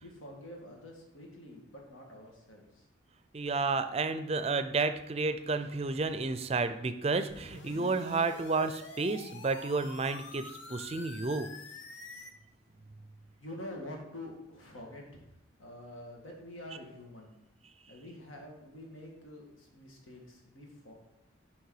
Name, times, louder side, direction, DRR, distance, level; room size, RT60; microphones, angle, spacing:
voice 1, 0.0-2.9 13.4-15.2 15.6-17.3 17.9-20.9, left 1 dB, 90° left, 0 dB, 2.0 m, -47 dB
voice 2, 3.3-11.5, right 3 dB, 30° right, 10 dB, 0.4 m, -31 dB
sound 1, 7.3-12.3, left 3 dB, 70° left, 0.8 m, -47 dB
6.5 x 5.4 x 4.8 m, 0.86 s
head